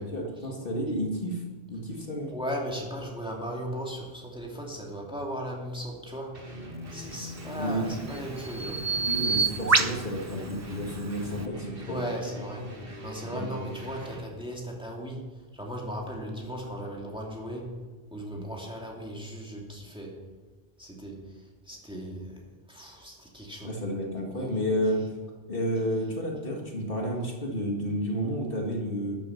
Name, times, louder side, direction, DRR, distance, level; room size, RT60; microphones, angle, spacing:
voice 1, 0.0-1.4 1.7-2.3 7.5-7.9 9.0-12.0 13.2-13.5 23.6-25.0 25.5-29.2, equal, 60° left, 0 dB, 2.2 m, -31 dB
voice 2, 2.3-6.3 6.9-8.8 11.9-12.7 13.0-15.2 15.5-17.8 18.1-20.2 20.8-21.4 21.7-22.4 22.7-23.7, equal, 5° right, -2 dB, 2.5 m, -37 dB
sound 1, 6.3-14.3, equal, 60° right, 1.9 m, -41 dB
Bird vocalization bird call bird song, 7.2-11.5, right 4 dB, 30° right, 0.3 m, -29 dB
13.5 x 10.5 x 5.8 m, 1.3 s
omnidirectional pair, 1.1 m